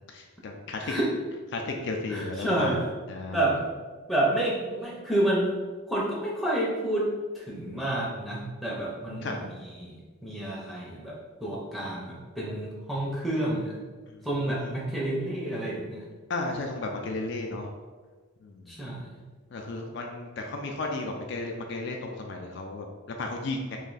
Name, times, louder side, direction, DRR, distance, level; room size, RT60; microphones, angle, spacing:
voice 1, 0.1-0.9 1.5-2.8 3.1-3.4 9.2-9.4 16.3-17.7 18.4-18.7 19.5-23.8, left 2 dB, 55° left, 2 dB, 0.4 m, -34 dB
voice 2, 2.1-2.9 3.3-3.6 4.1-5.6 5.9-7.1 7.3-9.9 10.2-11.2 11.4-13.8 14.2-16.0 18.7-19.1, right 1 dB, ahead, -5 dB, 0.6 m, -29 dB
3.1 x 2.6 x 3.9 m, 1.4 s
head